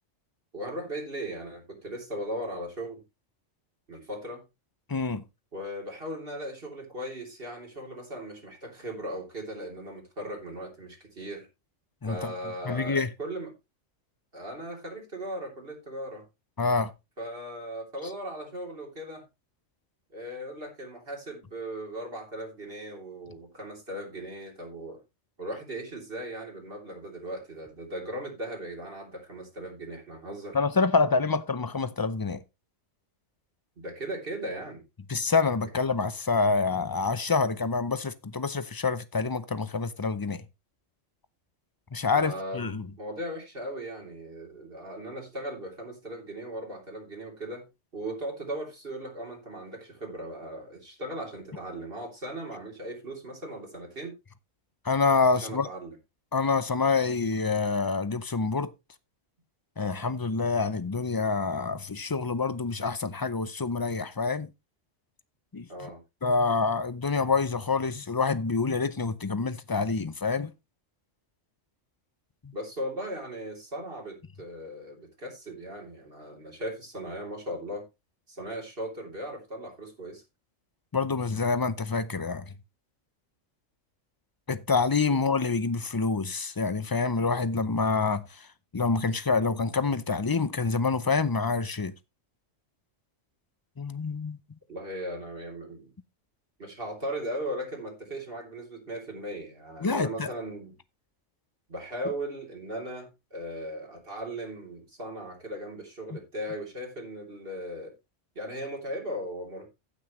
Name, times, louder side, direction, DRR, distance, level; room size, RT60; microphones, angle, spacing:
voice 1, 0.5-3.0 3.9-4.4 5.5-11.5 12.1-13.5 14.3-16.2 17.2-19.3 20.1-25.0 25.4-30.6 33.8-34.8 42.1-47.7 47.9-54.1 55.4-56.0 65.7-66.0 72.5-77.8 78.3-80.2 85.1-85.2 94.7-95.9 96.6-100.8 101.7-107.9 108.4-109.7, right 1 dB, 50° right, 3.5 m, -38 dB
voice 2, 4.9-5.2 12.0-12.2 12.7-13.1 16.6-16.9 30.5-32.4 35.1-40.4 41.9-42.9 54.8-55.7 56.3-58.7 59.8-64.5 65.5-65.7 66.2-70.5 80.9-82.4 84.5-88.5 88.7-91.9 93.8-94.4 99.8-100.3, left 4 dB, 30° left, 0.4 m, -27 dB
15.5 x 6.2 x 3.1 m
omnidirectional pair, 1.3 m